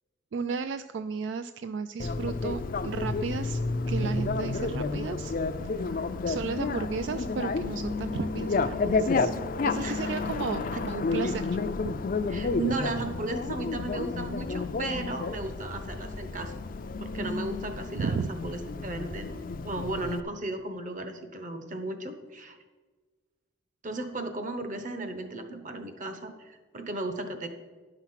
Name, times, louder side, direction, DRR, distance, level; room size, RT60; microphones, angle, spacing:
voice 1, 0.3-3.6 3.9-5.3 5.6-11.6 18.0-18.3, right 5 dB, 70° right, 11 dB, 0.3 m, -34 dB
Bicycle, 2.0-20.2, left 3 dB, 45° left, 0.4 m, -31 dB
voice 2, 9.8-10.2 11.2-11.3 12.3-16.5 17.0-19.3 19.6-22.6 23.8-27.5, right 2 dB, 40° right, 8 dB, 0.9 m, -35 dB
10.5 x 5.9 x 5.7 m, 1.4 s
head